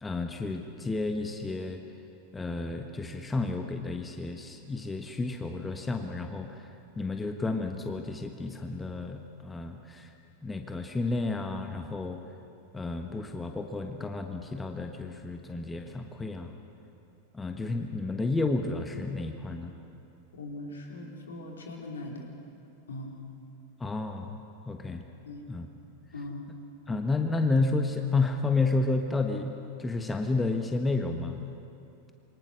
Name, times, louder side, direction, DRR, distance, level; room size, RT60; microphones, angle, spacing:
voice 1, 0.0-1.8 2.3-6.7 7.0-10.1 10.4-12.2 12.7-16.5 17.3-19.7 23.8-24.4 24.6-25.0 25.5-25.7 26.9-31.5, left 3 dB, 10° left, 5 dB, 1.4 m, -31 dB
voice 2, 20.3-22.3 22.9-23.2 25.3-25.4 26.1-26.5, left 2 dB, 65° left, 0 dB, 4.0 m, -40 dB
27.5 x 24.0 x 6.5 m, 2.7 s
figure-of-eight pair, 90°, 0 cm